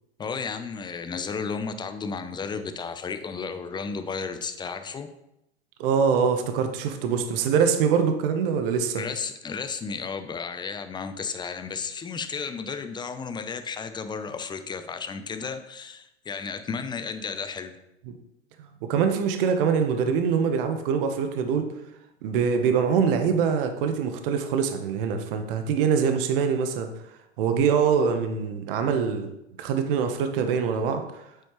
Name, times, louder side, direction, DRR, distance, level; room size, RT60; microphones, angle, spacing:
voice 1, 0.2-5.1 8.9-17.7, left 5 dB, 15° left, 9 dB, 0.7 m, -33 dB
voice 2, 5.8-9.0 18.1-18.2 18.8-21.7 22.2-26.9 27.4-29.3 29.6-31.0, right 6 dB, 55° right, 7 dB, 1.2 m, -24 dB
8.7 x 8.2 x 3.2 m, 0.84 s
hypercardioid pair, 105°, 33 cm